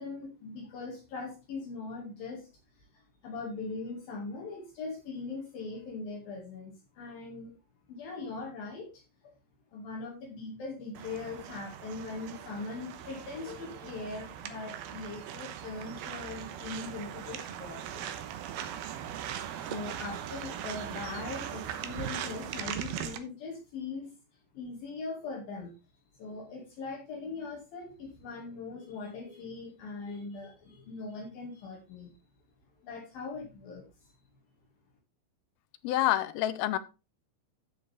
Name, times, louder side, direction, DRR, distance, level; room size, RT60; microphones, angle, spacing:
voice 1, 0.0-2.5 2.8-7.5 7.9-9.0 9.7-18.1 19.6-24.1 24.5-25.7 26.2-32.1 32.8-34.1, left 3 dB, 60° left, -1 dB, 3.7 m, -41 dB
sound 1, 10.9-23.2, right 10 dB, 75° right, 2.7 m, -40 dB
voice 2, 35.8-36.8, left 14 dB, 80° left, 12 dB, 2.4 m, -27 dB
14.0 x 6.4 x 3.4 m, 0.30 s
omnidirectional pair, 5.0 m